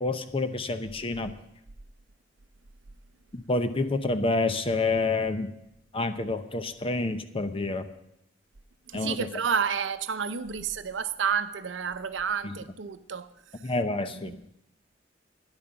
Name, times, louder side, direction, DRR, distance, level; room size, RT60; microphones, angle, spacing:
voice 1, 0.0-1.3 3.3-5.5 5.9-7.9 8.9-9.2 12.4-12.5 13.6-14.3, left 3 dB, 30° left, 0.8 m, -28 dB
voice 2, 8.9-13.3 13.6-13.7 14.1-14.4, right 6 dB, 75° right, 0.7 m, -30 dB
12.5 x 10.5 x 5.8 m
head